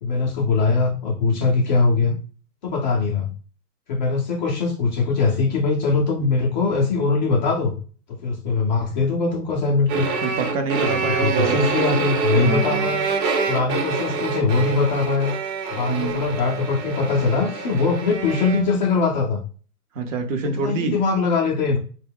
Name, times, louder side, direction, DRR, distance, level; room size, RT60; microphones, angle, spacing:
voice 1, 0.0-2.2 2.6-3.3 3.9-7.8 8.1-10.1 10.8-13.1 13.5-15.3 15.7-19.4 20.6-21.8, left 4 dB, 30° left, -2 dB, 0.4 m, -21 dB
sound 1, 9.9-18.7, right 4 dB, 75° right, 0.9 m, -26 dB
voice 2, 10.2-11.6 12.4-12.9 15.9-16.2 19.9-20.9, right 4 dB, 50° right, 6 dB, 0.7 m, -26 dB
2.2 x 2.0 x 3.4 m, 0.40 s
hypercardioid pair, 120°, 50 cm